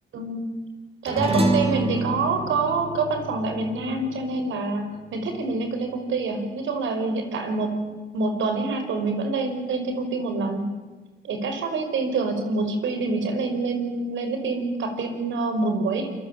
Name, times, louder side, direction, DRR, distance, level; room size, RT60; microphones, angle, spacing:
voice 1, 0.1-0.5 1.0-7.8 8.1-10.7 11.2-16.1, right 3 dB, 75° right, 7 dB, 5.7 m, -26 dB
sound 1, 1.1-5.7, right 1 dB, 30° right, 5.2 m, -28 dB
28.0 x 22.5 x 9.1 m, 1.3 s
cardioid pair, 90°, 20 cm